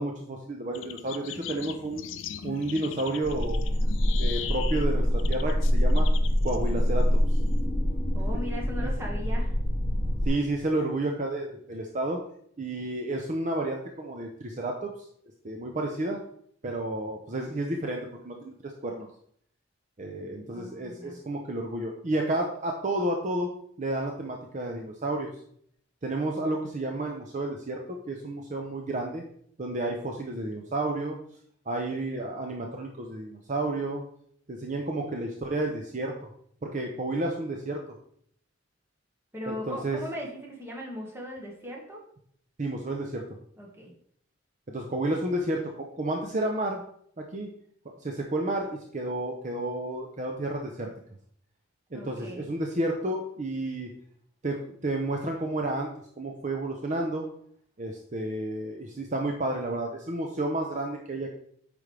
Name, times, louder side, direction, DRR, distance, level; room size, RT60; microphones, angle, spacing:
voice 1, 0.0-2.0 2.4-3.6 4.2-6.1 6.4-7.2 8.8-8.9 10.2-12.2 12.6-14.9 15.4-16.2 16.6-19.1 20.0-23.5 23.8-25.3 26.0-27.8 28.1-29.2 29.6-31.2 31.7-34.0 34.5-36.3 36.6-37.8 39.5-40.0 42.6-43.3 44.7-46.8 47.2-47.5 48.0-50.9 51.9-53.9 54.4-55.9 56.2-57.3 57.8-61.3, right 2 dB, 40° right, 1 dB, 0.7 m, -31 dB
sound 1, 0.7-7.7, left 9 dB, 80° left, 0.5 m, -40 dB
sound 2, 3.2-10.3, equal, 50° left, 1.2 m, -25 dB
voice 2, 8.1-9.5 20.5-21.2 39.3-42.0 43.6-43.9 51.9-52.5, equal, 15° right, -2 dB, 1.6 m, -38 dB
8.7 x 5.1 x 3.3 m, 0.65 s
head